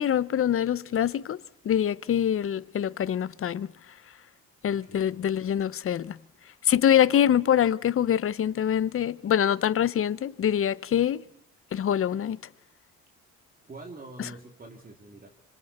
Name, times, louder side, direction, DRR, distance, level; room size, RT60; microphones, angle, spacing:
voice 1, 0.0-1.4 1.6-3.7 4.6-6.2 6.6-11.2 11.7-12.4 14.2-14.3, left 9 dB, 45° left, 0.7 m, -24 dB
voice 2, 4.8-5.2 13.7-15.3, right 2 dB, 30° right, 3.0 m, -45 dB
26.0 x 25.0 x 4.3 m
cardioid pair, 90°, 30 cm